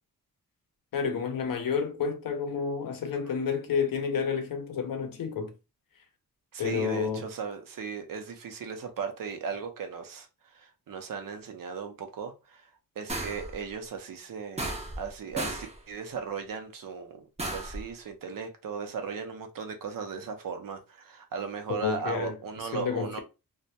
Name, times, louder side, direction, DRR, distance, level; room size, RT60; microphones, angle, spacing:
voice 1, 0.9-5.5 6.6-7.3 21.8-22.3 22.7-23.2, left 6 dB, 70° left, 0.6 m, -30 dB
voice 2, 6.5-12.7 13.0-23.2, right 6 dB, 65° right, 0.6 m, -37 dB
sound 1, 13.1-13.5 14.6-15.1 15.4-15.8 17.4-17.8, right 2 dB, 20° right, 0.5 m, -34 dB
2.2 x 2.1 x 2.6 m
wide cardioid pair, 115°, 35 cm